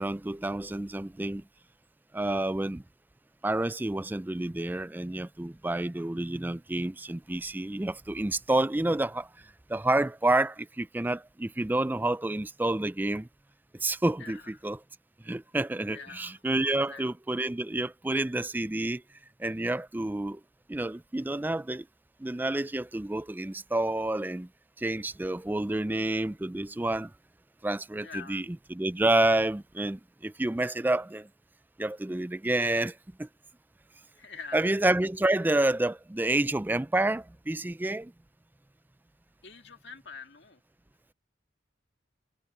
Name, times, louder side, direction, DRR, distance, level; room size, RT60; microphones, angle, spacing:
voice 1, 0.0-1.4 2.1-2.8 3.4-9.3 9.7-13.3 13.8-14.8 15.3-19.0 19.4-20.4 20.7-21.9 22.2-24.5 24.8-27.1 27.6-31.3 31.8-33.3 34.5-38.1, right 2 dB, 10° right, 0.3 m, -29 dB
voice 2, 14.2-14.5 15.9-16.3 16.9-17.0 28.0-28.4 34.2-34.7 39.4-40.6, left 5 dB, 60° left, 2.2 m, -44 dB
head